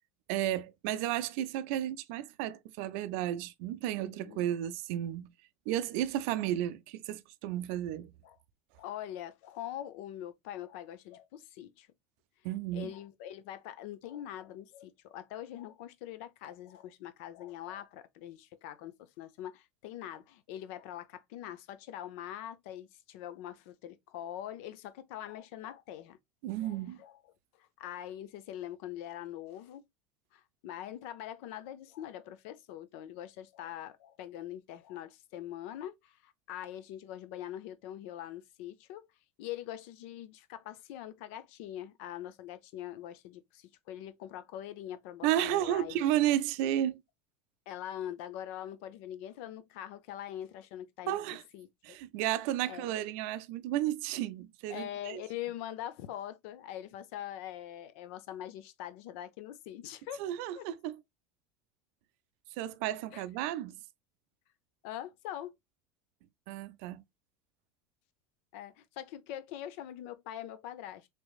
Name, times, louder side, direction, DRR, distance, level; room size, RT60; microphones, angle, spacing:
voice 1, 0.3-5.3 5.7-8.1 12.4-12.9 26.4-27.0 45.2-47.0 51.1-51.4 51.8-55.2 60.2-61.0 62.6-63.8 66.5-67.0, right 12 dB, 70° right, 0.4 m, -33 dB
voice 2, 4.0-4.4 8.2-8.4 8.8-11.9 12.7-26.2 26.6-27.2 27.6-29.8 30.3-39.0 39.4-46.0 47.7-51.2 51.5-52.0 52.6-52.9 54.7-60.2 60.5-60.7 63.1-63.2 64.8-65.5 68.5-71.1, left 11 dB, 70° left, 0.5 m, -43 dB
3.3 x 3.1 x 2.3 m
supercardioid pair, 110°, 7 cm